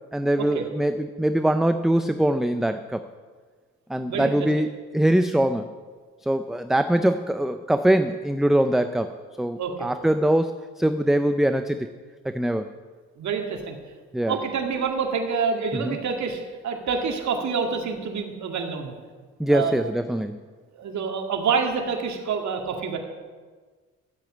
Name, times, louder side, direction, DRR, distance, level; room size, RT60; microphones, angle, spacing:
voice 1, 0.1-3.0 3.9-4.7 4.9-5.7 6.2-9.1 9.4-11.9 12.2-12.7 14.1-14.4 15.8-16.0 19.4-20.4, right 1 dB, ahead, 9 dB, 0.5 m, -22 dB
voice 2, 4.0-4.4 9.6-9.9 13.2-13.8 14.3-18.9 19.5-19.8 20.7-23.0, right 5 dB, 65° right, 3 dB, 2.2 m, -27 dB
12.5 x 8.4 x 8.5 m, 1.5 s
cardioid pair, 90°, 30 cm